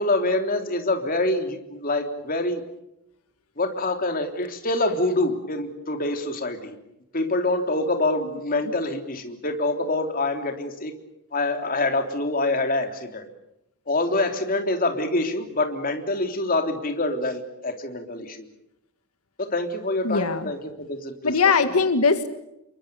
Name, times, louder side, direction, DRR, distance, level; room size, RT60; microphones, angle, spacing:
voice 1, 0.0-2.6 3.6-6.8 7.1-10.9 11.3-13.3 13.9-18.5 19.4-21.3, left 2 dB, 40° left, 5 dB, 3.5 m, -26 dB
voice 2, 20.0-20.5 21.2-22.4, left 4 dB, 85° left, 9 dB, 1.7 m, -21 dB
28.5 x 23.0 x 7.0 m, 0.86 s
head